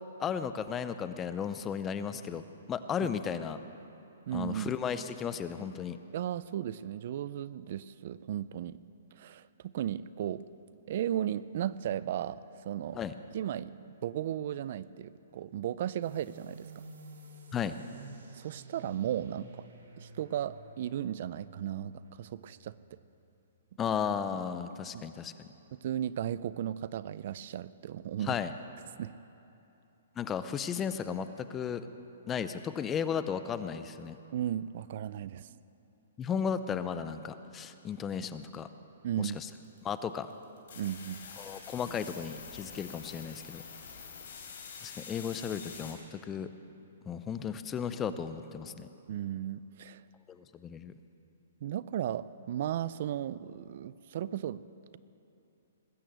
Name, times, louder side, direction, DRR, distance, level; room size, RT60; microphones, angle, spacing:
voice 1, 0.2-2.4 2.7-3.6 4.3-6.0 12.9-13.2 17.5-17.8 23.8-25.3 28.2-28.5 30.2-31.9 32.3-34.2 36.2-38.7 39.2-39.5 39.8-40.3 41.4-43.6 44.8-46.5 47.1-48.9 50.3-50.9, left 7 dB, 15° left, 11 dB, 0.5 m, -34 dB
voice 2, 4.3-4.7 6.1-8.8 9.1-10.5 10.9-13.0 13.3-16.7 18.3-19.6 20.0-22.8 24.9-25.1 25.7-28.4 29.0-29.1 34.3-35.5 39.0-39.4 40.8-41.2 49.1-50.0 51.6-54.6, right 11 dB, 50° right, 17 dB, 0.4 m, -35 dB
sound 1, 16.0-23.3, right 2 dB, 80° right, 3.0 m, -51 dB
sound 2, 39.2-45.9, left 6 dB, 60° left, 3.8 m, -46 dB
20.0 x 8.5 x 7.9 m, 2.9 s
hypercardioid pair, 160°, 0 cm